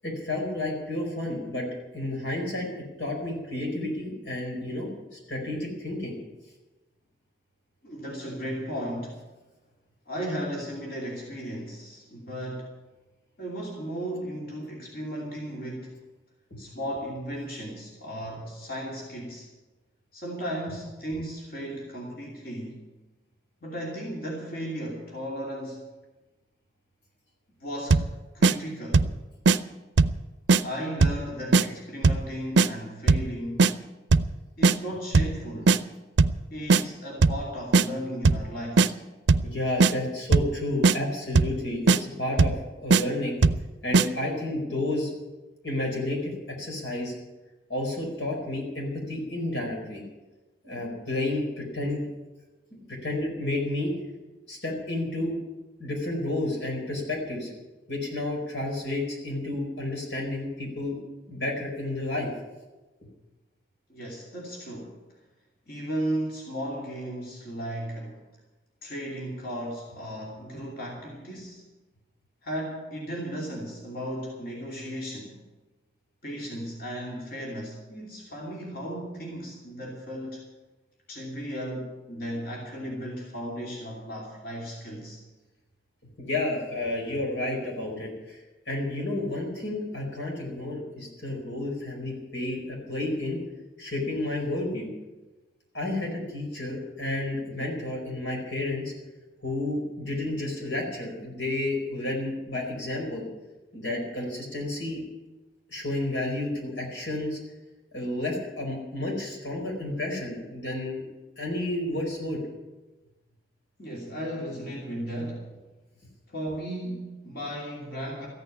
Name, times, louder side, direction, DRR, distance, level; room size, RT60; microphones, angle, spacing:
voice 1, 0.0-1.7 1.9-2.7 3.0-4.9 5.3-6.1 16.5-16.6 39.4-42.5 42.8-43.4 43.8-45.1 45.6-47.1 47.7-50.0 50.6-52.0 52.9-53.9 54.5-55.3 55.8-57.5 57.9-61.0 61.3-62.3 63.0-63.1 86.0-93.4 93.8-94.9 95.7-98.9 99.4-103.3 103.7-105.0 105.7-107.4 107.9-111.0 111.4-112.4, left 1 dB, 85° left, 0 dB, 4.7 m, -31 dB
voice 2, 7.8-9.2 10.1-12.7 13.4-16.0 16.6-19.5 20.1-22.8 23.6-25.9 27.6-28.0 28.3-29.1 30.6-33.7 34.6-35.8 36.5-38.9 63.9-65.0 65.7-68.2 68.8-71.7 72.4-75.3 76.2-80.4 81.1-85.2 113.8-115.5 116.3-118.3, equal, 55° left, -2 dB, 2.9 m, -35 dB
sound 1, 27.9-28.1 28.4-28.5 28.9-29.2 29.5-29.6 30.0-30.2 30.5-30.6 31.0-31.2 31.5-31.6 32.0-32.3 32.6-32.7 33.1-33.3 33.6-33.7 34.1-34.3 34.6-34.7 35.1-35.4 35.7-35.8 36.2-36.4 36.7-36.8 37.2-37.4 37.7-37.9 38.2-38.5 38.8-38.9 39.3-39.5 39.8-39.9 40.3-40.5 40.8-41.0 41.3-41.6 41.9-42.0 42.4-42.6 42.9-43.0 43.4-43.6 43.9-44.1, right 4 dB, 85° right, 0.5 m, -18 dB
14.5 x 8.9 x 9.7 m, 1.1 s
head